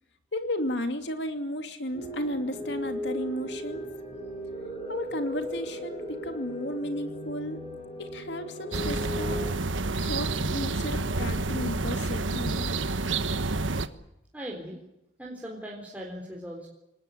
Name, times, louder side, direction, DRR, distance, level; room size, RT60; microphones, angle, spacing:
voice 1, 0.3-3.9 4.9-7.6 8.0-9.5 10.0-12.7, left 1 dB, 65° left, 7 dB, 2.5 m, -33 dB
sound 1, 1.9-9.5, equal, 30° left, 6.4 m, -37 dB
sound 2, 8.7-13.9, right 3 dB, 90° right, 1.3 m, -29 dB
voice 2, 14.3-14.8 15.2-16.7, equal, 10° right, -3 dB, 4.1 m, -40 dB
25.5 x 19.0 x 8.6 m, 0.88 s
head